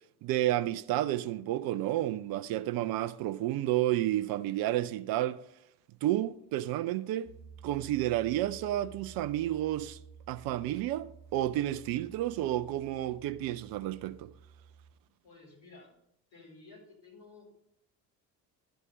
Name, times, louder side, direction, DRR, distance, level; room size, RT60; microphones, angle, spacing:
voice 1, 0.2-5.4 6.0-7.3 7.6-10.0 10.3-14.3, right 14 dB, 50° right, 0.6 m, -31 dB
Piano, 7.2-14.9, right 6 dB, 75° right, 0.9 m, -53 dB
voice 2, 15.2-15.9 16.3-17.5, left 3 dB, 65° left, 4.4 m, -53 dB
11.0 x 5.4 x 5.3 m
figure-of-eight pair, 50°, 48 cm